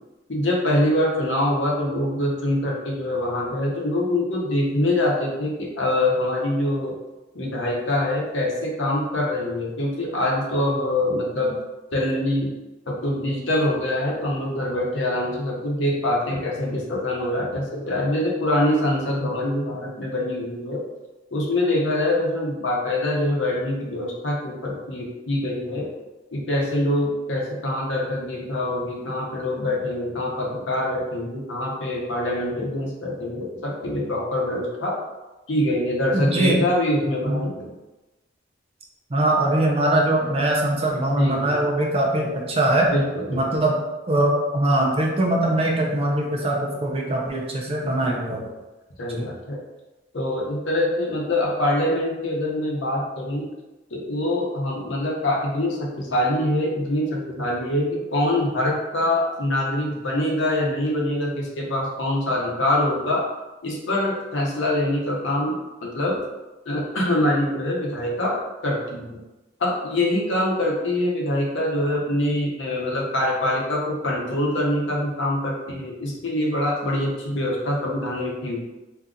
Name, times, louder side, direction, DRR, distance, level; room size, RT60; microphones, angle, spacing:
voice 1, 0.3-7.0 7.3-11.5 11.9-12.5 12.9-20.8 21.3-25.9 26.3-34.9 35.5-37.7 41.1-41.6 42.9-43.6 47.8-48.4 49.0-49.6 50.1-53.5 53.9-63.3 63.6-66.2 66.7-69.2 69.6-78.6, left 1 dB, 75° left, -2 dB, 0.8 m, -24 dB
voice 2, 36.1-36.7 37.3-37.4 39.1-42.9 43.3-43.8 44.1-48.4, right 1 dB, 30° right, -1 dB, 0.5 m, -22 dB
2.8 x 2.4 x 3.6 m, 1.1 s
head